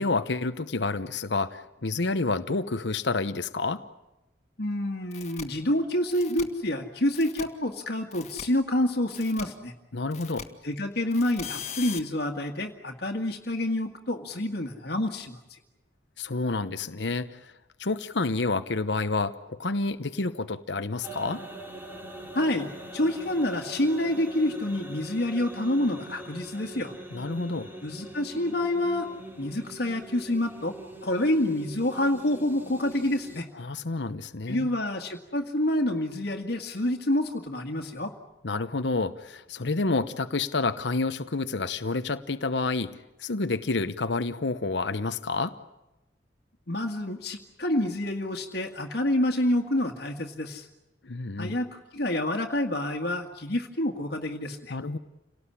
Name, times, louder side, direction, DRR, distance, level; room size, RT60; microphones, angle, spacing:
voice 1, 0.0-3.8 9.9-10.5 16.2-17.5 17.8-21.4 27.1-27.7 33.6-34.7 38.4-45.6 51.0-51.6 54.7-55.0, left 3 dB, 80° left, 10 dB, 1.0 m, -29 dB
voice 2, 4.6-9.7 10.6-15.6 22.3-26.9 27.8-29.1 29.4-30.8 31.0-33.5 34.5-38.1 46.7-50.7 51.4-54.8, left 1 dB, 65° left, 2 dB, 1.9 m, -28 dB
sound 1, 5.1-5.4 6.1-6.4 7.1-7.4 8.1-8.4 9.1-9.4 10.1-10.4 11.1-12.0, left 7 dB, 40° left, 2.1 m, -39 dB
sound 2, 21.0-33.4, right 1 dB, 10° right, 3.4 m, -43 dB
29.0 x 18.5 x 9.9 m, 0.97 s
head